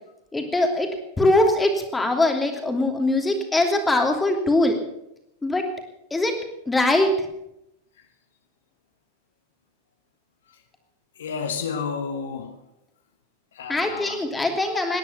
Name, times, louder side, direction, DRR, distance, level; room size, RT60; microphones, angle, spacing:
voice 1, 0.3-0.9 1.2-4.8 5.4-5.7 6.1-6.3 6.7-7.3 13.7-15.0, left 2 dB, 10° left, 4 dB, 2.9 m, -22 dB
voice 2, 11.2-12.6 13.5-14.2, left 5 dB, 60° left, 7 dB, 1.4 m, -31 dB
19.0 x 10.5 x 6.7 m, 0.82 s
figure-of-eight pair, 90°, 0 cm